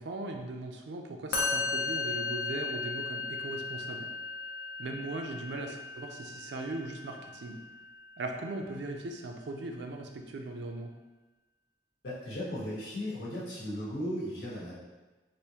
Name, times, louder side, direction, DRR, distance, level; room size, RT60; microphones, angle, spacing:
voice 1, 0.0-4.1 4.8-7.6 8.2-10.9, right 2 dB, 65° right, 3 dB, 0.4 m, -39 dB
Musical instrument, 1.3-8.6, left 4 dB, 55° left, 0.5 m, -36 dB
voice 2, 12.0-14.8, equal, 80° left, -7 dB, 1.1 m, -36 dB
3.4 x 2.6 x 2.8 m, 1.2 s
head